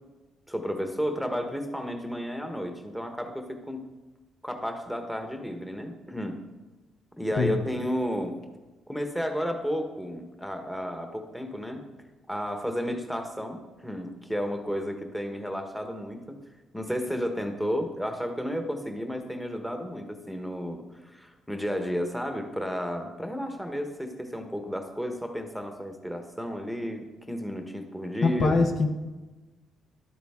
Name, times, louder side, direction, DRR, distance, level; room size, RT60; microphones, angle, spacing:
voice 1, 0.5-3.9 4.4-6.4 7.2-8.4 8.9-11.8 12.3-16.4 16.7-28.5, equal, ahead, 5 dB, 1.3 m, -32 dB
voice 2, 28.2-28.9, left 3 dB, 60° left, 4 dB, 1.1 m, -23 dB
11.5 x 8.5 x 3.7 m, 1.2 s
supercardioid pair, 70°, 0 cm